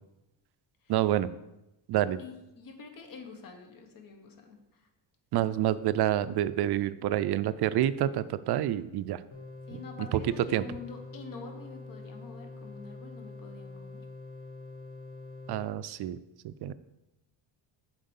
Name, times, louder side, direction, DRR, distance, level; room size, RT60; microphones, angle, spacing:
voice 1, 0.9-1.3 1.9-2.2 5.3-9.2 10.1-10.2 10.5-10.6 15.5-16.2 16.4-16.7, right 12 dB, 60° right, 15 dB, 0.5 m, -28 dB
voice 2, 2.2-4.6 9.7-14.0, left 4 dB, 45° left, 5 dB, 1.3 m, -46 dB
sound 1, 9.3-15.7, left 3 dB, 30° left, 1.3 m, -45 dB
7.5 x 4.6 x 7.1 m, 0.93 s
cardioid pair, 160°, 46 cm